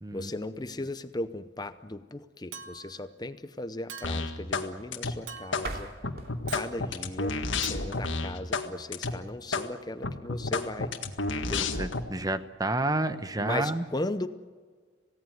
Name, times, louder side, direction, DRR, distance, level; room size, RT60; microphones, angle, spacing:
voice 1, 0.1-5.9 6.5-10.9 11.5-11.7 13.4-14.3, left 2 dB, 20° left, 11 dB, 0.7 m, -37 dB
Chink clink, 2.5-3.0 3.9-4.4 5.3-5.8 6.5-6.7 7.6-7.8, right 6 dB, 85° right, 1.4 m, -43 dB
sound 1, 4.0-4.7 4.9-5.7 6.0-8.7 8.9-9.1 9.5-9.7 10.0-12.0, left 3 dB, 80° left, 1.8 m, -30 dB
sound 2, 5.5-8.4, right 2 dB, 55° right, 2.9 m, -43 dB
voice 2, 11.6-13.8, right 2 dB, 20° right, 11 dB, 1.0 m, -30 dB
27.5 x 17.5 x 9.4 m, 1.5 s
head